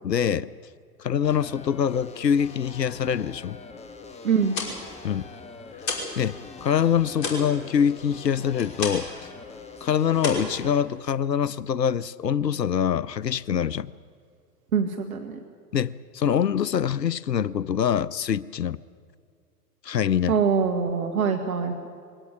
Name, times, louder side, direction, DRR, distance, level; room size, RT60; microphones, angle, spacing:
voice 1, 0.0-0.5 1.0-3.6 5.0-5.3 6.2-6.4 6.6-9.3 9.8-13.9 15.7-18.8 19.8-20.3, left 8 dB, 90° left, 21 dB, 0.6 m, -24 dB
sound 1, 1.2-10.8, left 4 dB, 15° left, 1.3 m, -43 dB
voice 2, 4.2-4.6 14.7-15.4 20.3-21.9, right 6 dB, 60° right, 6 dB, 1.8 m, -24 dB
sound 2, 4.3-6.2 6.5-9.2 9.5-9.8 10.2-11.3, left 3 dB, 35° left, 5.4 m, -33 dB
22.0 x 18.0 x 9.8 m, 2.3 s
figure-of-eight pair, 105°, 48 cm